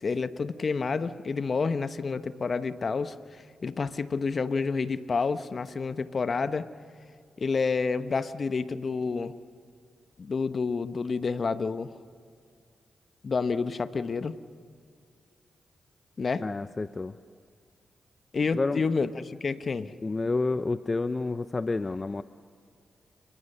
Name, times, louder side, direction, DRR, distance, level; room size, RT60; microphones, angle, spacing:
voice 1, 0.0-3.1 3.6-6.7 7.4-9.3 10.2-11.9 13.2-14.4 16.2-16.4 18.3-19.9, left 4 dB, 55° left, 12 dB, 1.1 m, -29 dB
voice 2, 16.4-17.1 18.5-18.8 20.0-22.2, left 3 dB, 35° left, 12 dB, 0.7 m, -29 dB
28.5 x 21.5 x 6.8 m, 2.2 s
supercardioid pair, 40°, 0 cm